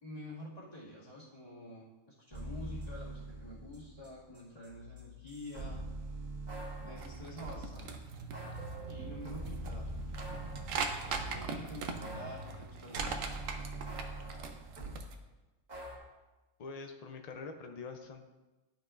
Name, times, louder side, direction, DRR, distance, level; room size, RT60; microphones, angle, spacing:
voice 1, 0.0-5.8 6.8-7.9 8.9-9.9 11.1-13.3, left 1 dB, 30° left, -8 dB, 2.2 m, -48 dB
sound 1, 2.3-4.1 4.3-7.7 8.3-11.5 12.0-15.0 15.7-16.0, right 1 dB, 30° right, 1.7 m, -44 dB
sound 2, 6.9-15.1, right 5 dB, 75° right, 1.1 m, -41 dB
voice 2, 16.6-18.3, left 4 dB, 70° left, 5 dB, 0.3 m, -45 dB
11.5 x 5.9 x 2.5 m, 1.1 s
omnidirectional pair, 1.4 m